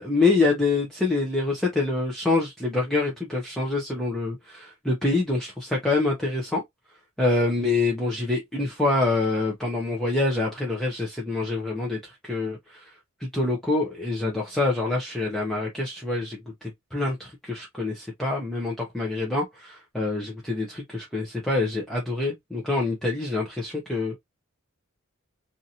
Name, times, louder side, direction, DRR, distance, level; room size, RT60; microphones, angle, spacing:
voice 1, 0.0-6.6 7.2-12.0 12.2-12.6 13.2-16.4 16.9-24.1, left 3 dB, ahead, 0.6 m, -26 dB
2.8 x 2.5 x 2.6 m
head